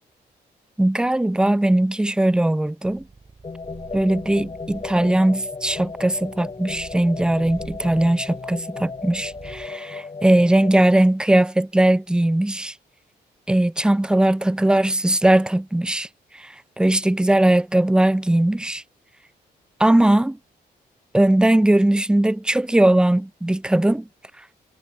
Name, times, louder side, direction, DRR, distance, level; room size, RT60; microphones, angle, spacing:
voice 1, 0.8-3.0 3.9-12.7 13.5-16.1 16.4-18.8 19.8-20.4 21.1-24.0, right 1 dB, 5° right, 0.3 m, -19 dB
Purr, 2.8-9.8, right 3 dB, 35° right, 4.8 m, -46 dB
sound 1, 3.4-10.8, left 4 dB, 30° left, 1.1 m, -35 dB
supercardioid pair, 55°, 19 cm